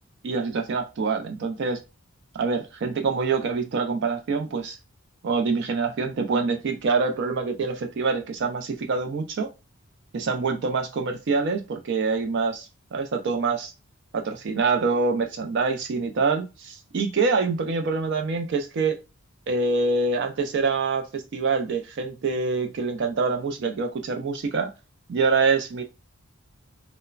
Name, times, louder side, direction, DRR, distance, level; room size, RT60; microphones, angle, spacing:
voice 1, 0.2-1.8 2.3-4.8 5.2-9.5 10.1-13.7 14.1-19.0 19.5-24.7 25.1-25.8, right 4 dB, 55° right, 0.3 m, -25 dB
3.0 x 2.0 x 2.3 m
head